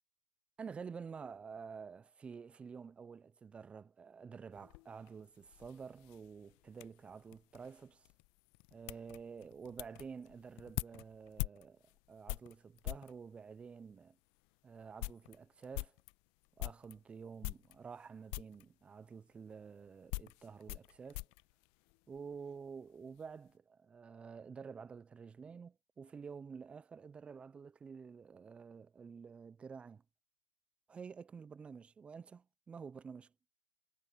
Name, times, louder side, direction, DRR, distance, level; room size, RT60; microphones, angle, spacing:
voice 1, 0.6-8.1 8.7-11.8 12.1-14.2 14.6-16.0 16.6-21.3 22.1-30.0 30.9-33.3, right 6 dB, 5° right, 0.3 m, -50 dB
sound 1, 4.5-13.2 13.9-14.0 14.4-14.5 14.8-17.0 17.4-18.0 18.3-18.7 19.5-22.4 22.7-23.3, left 29 dB, 30° left, 0.9 m, -45 dB
hypercardioid pair, 130°, 20 cm